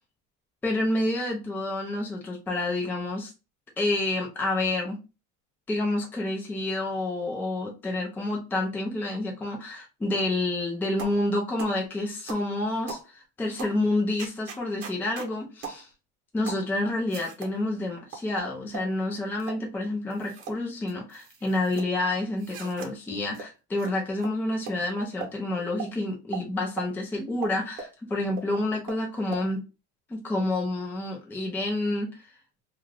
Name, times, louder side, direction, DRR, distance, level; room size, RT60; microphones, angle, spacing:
voice 1, 0.6-3.3 3.8-5.0 5.7-15.9 16.3-29.6 30.1-32.1, left 2 dB, 5° left, -1 dB, 0.5 m, -29 dB
sound 1, 11.0-11.2 11.6-11.8 12.3-12.5 12.9-13.1 13.6-13.8 14.2-15.3 15.6-15.8 16.5-16.7 17.1-17.5 18.1-18.9 19.4-19.6 20.1-20.6 20.9-21.9 22.4-22.9 23.3-23.5 23.8-23.9 24.2-24.3 24.7-24.8 25.2-25.3 25.8-25.9 26.3-26.4 26.8-26.9 27.4-27.9 28.4-28.5 28.9-29.0 29.3-29.4, right 6 dB, 45° right, 1.0 m, -38 dB
2.4 x 2.4 x 3.1 m, 0.29 s
cardioid pair, 150°, 30 cm